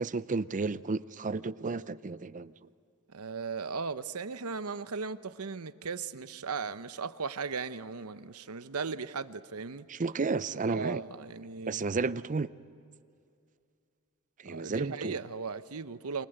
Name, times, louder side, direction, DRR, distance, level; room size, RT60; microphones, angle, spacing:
voice 1, 0.0-2.5 9.9-11.0 11.7-12.5 14.4-15.2, right 4 dB, 35° right, 0.6 m, -32 dB
voice 2, 3.1-9.9 10.7-11.8 14.5-16.3, right 5 dB, 85° right, 0.9 m, -37 dB
28.0 x 25.5 x 8.0 m
head